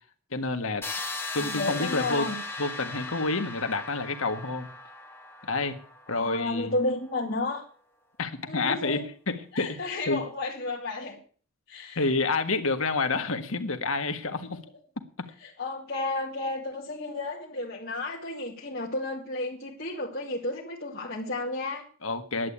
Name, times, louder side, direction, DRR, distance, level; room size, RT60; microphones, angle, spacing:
voice 1, 0.3-0.8 1.3-2.3 2.6-4.7 5.4-5.8 6.1-6.7 8.2-10.2 11.9-14.6 15.2-15.3 22.0-22.5, left 3 dB, 80° left, 7 dB, 1.6 m, -29 dB
sound 1, 0.8-6.6, left 3 dB, 10° left, 2.1 m, -37 dB
voice 2, 1.4-2.4 6.1-7.6 8.5-9.0 9.5-11.2 11.7-12.0 15.4-21.8, left 2 dB, 50° left, -4 dB, 2.2 m, -32 dB
11.0 x 8.9 x 8.2 m, 0.43 s
head